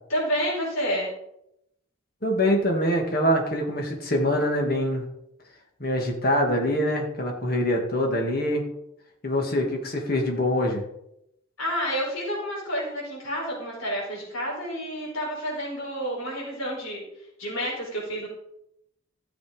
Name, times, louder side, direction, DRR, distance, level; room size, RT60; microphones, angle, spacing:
voice 1, 0.1-1.1 11.6-17.0 17.4-18.3, equal, 90° left, -4 dB, 5.0 m, -29 dB
voice 2, 2.2-5.1 5.8-8.7 9.2-10.8, equal, 45° left, 2 dB, 2.3 m, -24 dB
13.5 x 7.4 x 5.2 m, 0.80 s
head